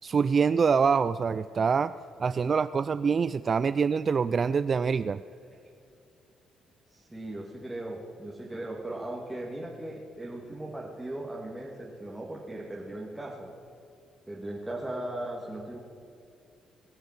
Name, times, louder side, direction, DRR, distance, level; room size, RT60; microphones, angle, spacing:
voice 1, 0.0-1.9 2.2-5.2, right 5 dB, 40° right, 14 dB, 0.3 m, -25 dB
voice 2, 6.9-13.5 14.3-15.8, right 1 dB, 10° right, -4 dB, 2.2 m, -38 dB
21.0 x 7.3 x 7.4 m, 2.5 s
cardioid pair, 90°, 0 cm